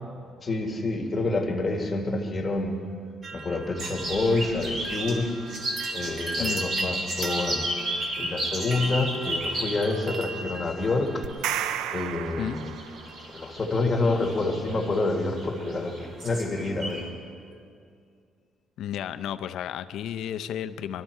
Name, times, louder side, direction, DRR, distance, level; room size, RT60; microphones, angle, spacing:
voice 1, 0.4-2.8 3.3-5.3 5.9-7.7 8.2-11.3 11.9-12.7 13.3-17.0, left 2 dB, 25° left, 2 dB, 1.7 m, -27 dB
sound 1, 3.2-12.2 13.1-13.6 13.9-14.4 14.7-14.8, right 2 dB, 30° right, 0.9 m, -38 dB
sound 2, 3.8-17.1, right 1 dB, 55° right, 3.5 m, -34 dB
sound 3, 11.2-13.2, right 10 dB, 90° right, 0.4 m, -32 dB
voice 2, 18.8-21.0, left 10 dB, 70° left, 10 dB, 0.6 m, -32 dB
24.0 x 13.0 x 4.5 m, 2.3 s
cardioid pair, 140°, 0 cm